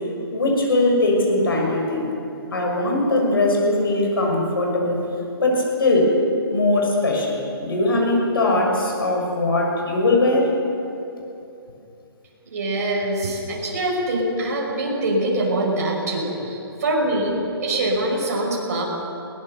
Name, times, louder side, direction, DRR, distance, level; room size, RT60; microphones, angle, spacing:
voice 1, 0.3-2.1 2.5-5.0 5.4-6.1 6.5-10.5, left 2 dB, 65° left, 0 dB, 6.5 m, -20 dB
voice 2, 12.5-18.8, right 1 dB, 40° right, -2 dB, 5.6 m, -24 dB
22.0 x 18.5 x 6.8 m, 2.8 s
hypercardioid pair, 175°, 13 cm